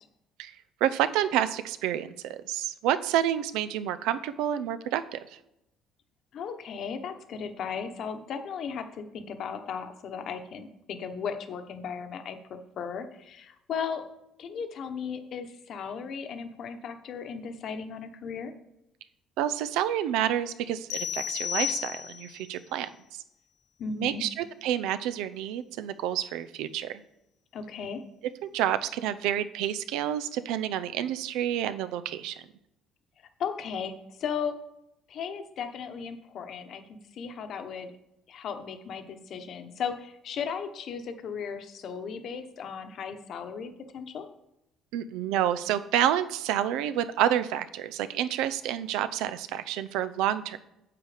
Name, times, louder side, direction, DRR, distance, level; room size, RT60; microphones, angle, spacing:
voice 1, 0.8-5.4 19.4-23.2 23.9-27.0 28.4-32.4 44.9-50.6, right 11 dB, 90° right, 13 dB, 0.6 m, -29 dB
voice 2, 6.3-14.1 14.4-18.5 23.8-24.2 27.5-28.0 33.4-34.6 35.1-37.9 38.3-44.3, left 6 dB, 45° left, 7 dB, 1.0 m, -36 dB
sound 1, 20.9-22.4, left 9 dB, 75° left, 0.6 m, -32 dB
8.6 x 8.0 x 5.0 m, 0.85 s
cardioid pair, 170°, 0 cm